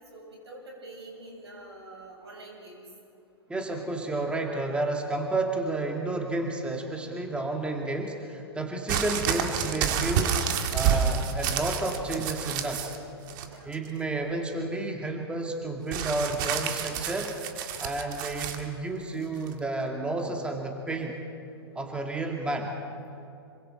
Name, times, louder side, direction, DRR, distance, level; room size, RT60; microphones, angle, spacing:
voice 1, 0.1-2.9 13.4-13.7, right 2 dB, 80° right, -1 dB, 7.1 m, -46 dB
voice 2, 3.5-10.4 10.7-13.0 13.6-17.4 17.8-21.2 21.8-22.7, right 2 dB, 10° right, 2 dB, 2.1 m, -31 dB
sound 1, 8.9-13.0 13.3-13.9 15.9-18.6 19.5-19.6, right 8 dB, 50° right, 2.0 m, -29 dB
26.5 x 24.0 x 4.4 m, 2.6 s
hypercardioid pair, 110°, 13 cm